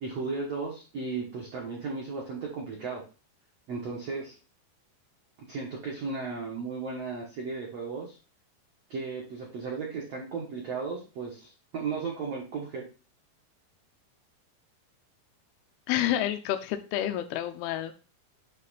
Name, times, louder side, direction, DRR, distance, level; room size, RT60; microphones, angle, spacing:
voice 1, 0.0-3.0 3.7-4.3 5.5-8.2 8.9-12.8, right 4 dB, 75° right, 1.4 m, -35 dB
voice 2, 15.9-17.9, left 12 dB, 85° left, 2.2 m, -29 dB
8.4 x 3.1 x 4.0 m
omnidirectional pair, 5.1 m